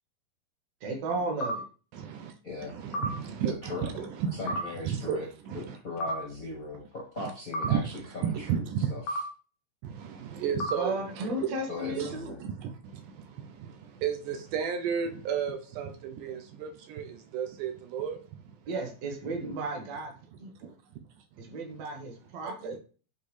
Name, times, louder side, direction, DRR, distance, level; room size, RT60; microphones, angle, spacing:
voice 1, 0.8-1.7 10.8-12.4 18.7-20.1 20.4-20.7 21.4-22.8, right 2 dB, 55° right, 2.1 m, -34 dB
sound 1, 1.4-1.6 2.9-3.1 4.5-4.7 6.0-6.2 7.5-7.7 9.1-9.3 10.6-10.8, equal, 90° left, 2.4 m, -31 dB
voice 2, 1.9-2.4 2.6-5.8 7.2-7.3 7.6-8.9 9.8-11.5 12.0-18.6 20.6-21.0 22.4-22.8, right 8 dB, 80° right, 2.0 m, -34 dB
voice 3, 2.4-2.8 3.6-3.9 4.3-5.3 5.8-8.6 8.9-9.0 11.7-12.4, left 2 dB, 70° left, 0.8 m, -38 dB
8.3 x 4.5 x 3.3 m
omnidirectional pair, 4.1 m